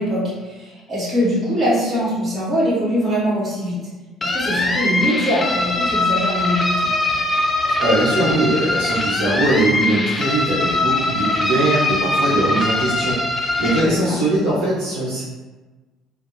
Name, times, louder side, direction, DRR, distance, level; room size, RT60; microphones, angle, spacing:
voice 1, 0.0-3.8 4.2-6.9 13.8-14.2, equal, 45° right, -7 dB, 1.4 m, -22 dB
sound 1, 4.2-13.8, left 2 dB, 25° left, 0.4 m, -21 dB
voice 2, 7.8-13.2 13.6-15.2, right 1 dB, 70° right, -9 dB, 0.8 m, -20 dB
3.3 x 2.0 x 2.6 m, 1.2 s
hypercardioid pair, 55°, 0 cm